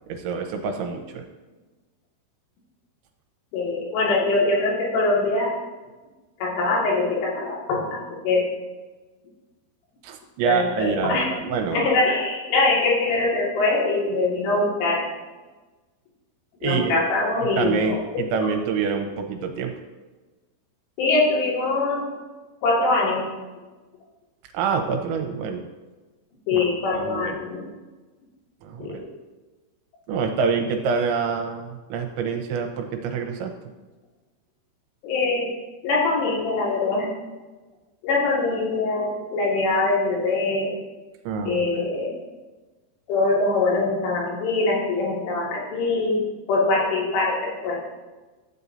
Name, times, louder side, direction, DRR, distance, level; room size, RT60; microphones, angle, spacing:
voice 1, 0.1-1.3 10.0-11.9 16.6-17.0 17.6-19.7 24.5-25.6 26.5-27.4 28.6-29.0 30.1-33.5 41.3-41.6, right 5 dB, 85° right, 3 dB, 3.0 m, -26 dB
voice 2, 3.5-5.5 6.4-8.5 10.4-11.3 11.7-15.0 16.6-18.0 18.4-18.5 21.0-22.1 22.6-23.3 26.5-27.7 28.8-29.0 35.0-35.5 35.8-37.1 38.0-40.7 41.4-42.2 43.1-47.8, left 3 dB, 85° left, -5 dB, 4.7 m, -23 dB
12.0 x 8.2 x 2.7 m, 1.2 s
omnidirectional pair, 5.5 m